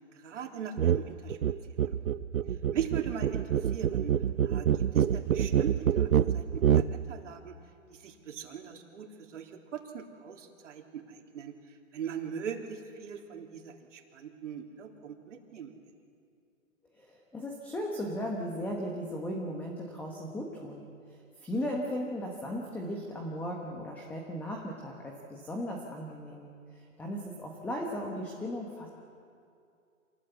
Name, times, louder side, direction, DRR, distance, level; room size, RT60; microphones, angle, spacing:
voice 1, 0.1-1.4 2.7-6.1 6.3-7.6 7.9-15.8, right 8 dB, 60° right, 2 dB, 3.4 m, -40 dB
sound 1, 0.8-1.0 1.3-6.9, right 9 dB, 80° right, 0.9 m, -26 dB
voice 2, 16.9-28.9, equal, 5° left, 0 dB, 1.3 m, -37 dB
27.5 x 19.5 x 8.2 m, 2.4 s
hypercardioid pair, 160°, 41 cm